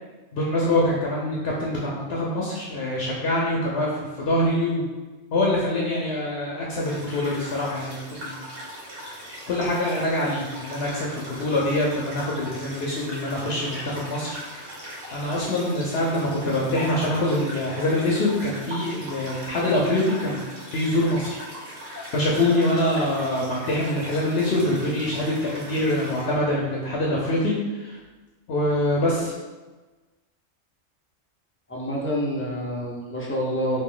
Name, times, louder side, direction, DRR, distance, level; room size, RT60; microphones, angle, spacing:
voice 1, 0.3-4.9 5.3-8.4 9.5-14.4 15.1-20.5 20.7-21.4 22.1-28.0 28.5-29.3, left 1 dB, 65° left, -4 dB, 0.8 m, -24 dB
sound 1, 6.8-26.4, equal, 90° right, 1.2 m, -40 dB
voice 2, 31.7-33.8, equal, 20° left, -4 dB, 0.4 m, -27 dB
3.0 x 2.7 x 3.6 m, 1.2 s
omnidirectional pair, 1.2 m